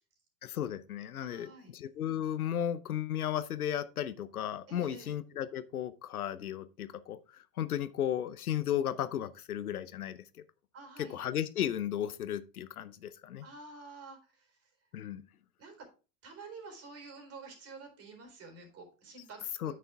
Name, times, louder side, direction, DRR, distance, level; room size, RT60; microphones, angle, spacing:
voice 1, 0.4-10.2 11.0-13.5 14.9-15.2 19.6-19.7, left 10 dB, 75° left, 0.8 m, -35 dB
voice 2, 1.2-1.7 4.7-5.1 10.7-11.2 13.4-14.5 15.6-15.9 16.2-19.7, right 4 dB, 30° right, 4.0 m, -49 dB
9.1 x 6.6 x 3.4 m
figure-of-eight pair, 85°, 45 cm